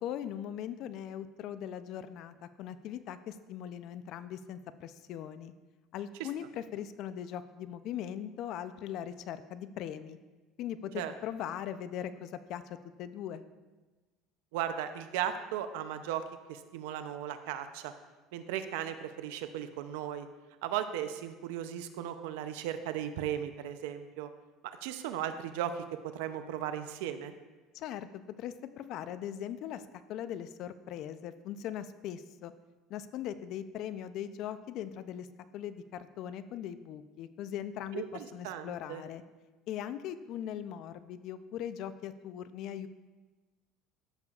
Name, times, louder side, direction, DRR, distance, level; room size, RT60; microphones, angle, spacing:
voice 1, 0.0-5.5 5.9-10.2 10.6-13.4 27.7-29.8 30.1-32.5 32.9-35.3 35.5-39.2 39.7-42.9, left 10 dB, 60° left, 12 dB, 0.4 m, -40 dB
voice 2, 14.5-17.9 18.3-20.3 20.6-24.3 24.6-27.3 37.9-39.0, right 10 dB, 85° right, 10 dB, 0.5 m, -36 dB
13.0 x 6.9 x 2.4 m, 1.2 s
supercardioid pair, 115°, 0 cm